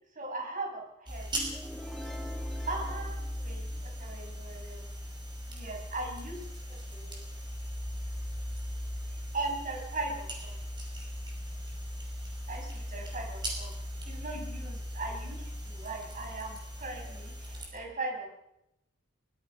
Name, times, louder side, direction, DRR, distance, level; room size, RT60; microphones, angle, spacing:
voice 1, 0.2-1.3 2.7-3.7 4.0-4.9 5.5-7.2 9.3-10.6 12.5-13.7 14.0-18.3, right 2 dB, 40° right, 1 dB, 5.9 m, -39 dB
sound 1, 1.1-17.7, equal, 20° right, 6.0 m, -38 dB
sound 2, 1.3-4.1, left 1 dB, ahead, 2.0 m, -46 dB
24.5 x 21.5 x 5.5 m, 0.86 s
head